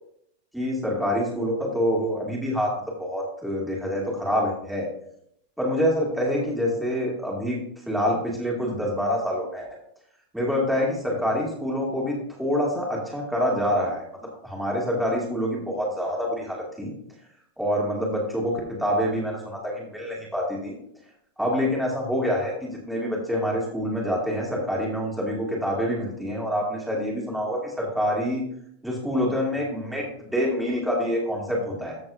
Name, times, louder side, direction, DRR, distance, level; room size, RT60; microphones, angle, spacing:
voice 1, 0.5-4.9 5.6-7.6 7.9-9.7 10.3-14.1 14.4-16.9 17.6-20.7 21.4-28.4 28.8-32.0, equal, ahead, -4 dB, 2.0 m, -26 dB
13.5 x 6.5 x 2.5 m, 0.72 s
supercardioid pair, 175°, 0 cm